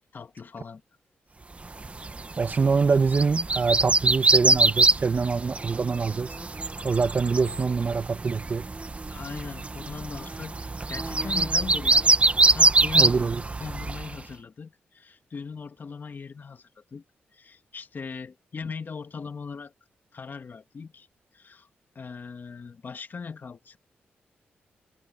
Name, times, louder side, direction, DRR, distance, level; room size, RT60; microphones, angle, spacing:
voice 1, 0.1-0.8 9.1-12.2 12.5-17.0 17.3-19.7 20.1-21.1 21.3-21.7 22.0-23.8, left 5 dB, 50° left, 2.2 m, -39 dB
sound 1, 1.7-14.2, right 3 dB, 30° right, 1.5 m, -24 dB
voice 2, 2.4-6.3 6.8-8.7 12.9-13.4, right 5 dB, 45° right, 1.8 m, -24 dB
cardioid pair, 65°, 4 cm